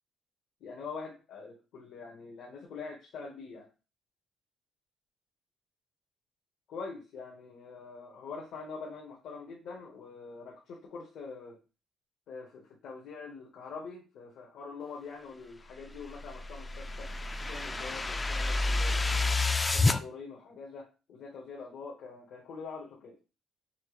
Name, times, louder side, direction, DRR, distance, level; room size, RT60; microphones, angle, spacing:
voice 1, 0.6-3.7 6.7-11.6 12.3-19.3 19.7-23.2, left 4 dB, 80° left, -3 dB, 1.3 m, -44 dB
sound 1, 15.9-20.0, left 2 dB, 20° left, 0.4 m, -29 dB
5.7 x 2.4 x 3.2 m, 0.31 s
cardioid pair, 90°, 0 cm